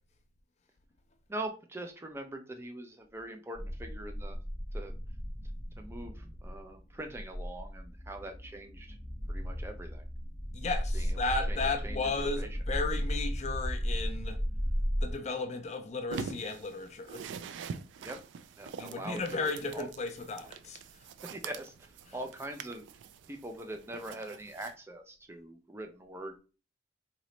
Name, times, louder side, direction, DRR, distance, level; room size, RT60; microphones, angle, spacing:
voice 1, 1.3-4.4 4.7-4.9 5.8-9.0 9.3-10.0 10.9-11.2 11.5-11.6 11.8-12.6 18.0-18.2 18.6-19.9 21.3-22.9 23.3-26.4, right 1 dB, 15° right, 0.5 m, -43 dB
sound 1, 3.5-15.1, equal, 50° right, 2.0 m, -35 dB
voice 2, 10.5-14.4 15.0-17.2 18.8-20.8, left 3 dB, 35° left, 0.5 m, -34 dB
sound 2, 16.1-24.7, right 6 dB, 75° right, 0.3 m, -45 dB
3.9 x 2.9 x 3.1 m
head